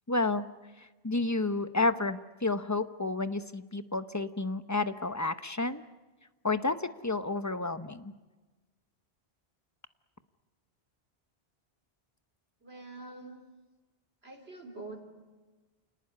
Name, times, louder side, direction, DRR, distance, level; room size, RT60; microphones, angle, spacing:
voice 1, 0.1-0.5 1.0-5.8 6.4-8.1, left 3 dB, 20° left, 11 dB, 0.8 m, -30 dB
voice 2, 12.6-13.4 14.2-15.0, right 2 dB, 75° right, 4 dB, 3.7 m, -45 dB
28.0 x 19.0 x 9.7 m, 1.2 s
omnidirectional pair, 1.0 m